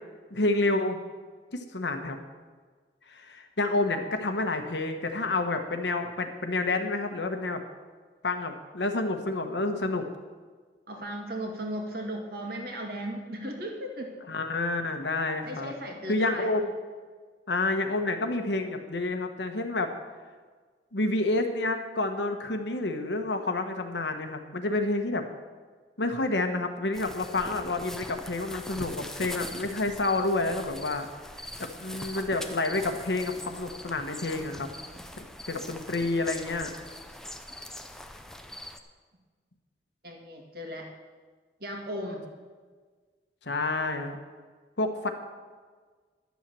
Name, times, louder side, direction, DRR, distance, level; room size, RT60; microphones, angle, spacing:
voice 1, 0.3-1.0 1.5-2.2 3.1-7.6 8.2-10.1 14.3-15.7 16.1-16.7 17.5-19.9 20.9-25.2 26.0-31.1 31.6-34.7 35.2-36.7 43.4-44.2 44.8-45.1, left 2 dB, 85° left, 6 dB, 1.2 m, -29 dB
voice 2, 10.9-14.2 15.5-16.6 34.4-35.3 40.0-40.9 41.6-42.2, right 1 dB, 60° right, 2 dB, 2.0 m, -37 dB
sound 1, 26.9-38.8, left 1 dB, 5° left, 0.6 m, -42 dB
11.0 x 7.3 x 7.6 m, 1.5 s
head